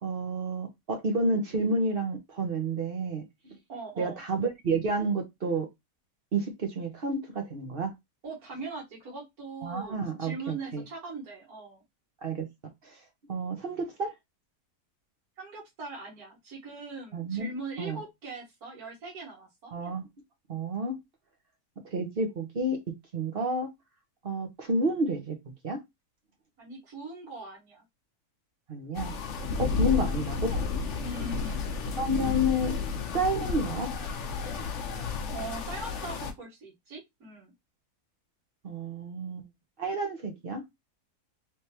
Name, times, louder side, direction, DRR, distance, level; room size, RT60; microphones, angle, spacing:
voice 1, 0.0-3.6 4.0-5.7 6.3-7.9 9.6-10.8 12.2-12.4 12.8-12.9 13.3-14.1 17.1-17.5 17.8-18.0 19.7-20.1 20.5-21.0 21.8-22.8 23.1-23.7 24.2-25.4 25.6-25.8 28.7-29.1 29.6-30.6 32.0-32.8 33.1-33.9 38.6-39.5 39.8-40.6, right 1 dB, 45° right, 1.0 m, -30 dB
voice 2, 3.7-4.2 8.2-11.8 15.4-19.7 26.6-27.8 29.5-30.0 31.0-31.6 35.3-37.5, right 3 dB, 80° right, 1.9 m, -41 dB
sound 1, 28.9-36.3, left 4 dB, 60° left, 0.9 m, -32 dB
3.3 x 3.2 x 2.8 m
omnidirectional pair, 1.6 m